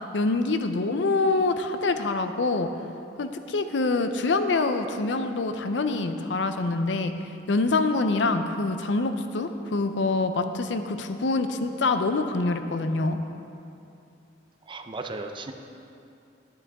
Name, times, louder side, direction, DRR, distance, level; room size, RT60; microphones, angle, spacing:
voice 1, 0.1-2.7 3.2-7.1 7.5-13.2, left 3 dB, 90° left, 8 dB, 0.6 m, -25 dB
voice 2, 14.7-15.5, right 3 dB, 30° right, 5 dB, 0.5 m, -35 dB
10.5 x 10.0 x 3.5 m, 2.7 s
head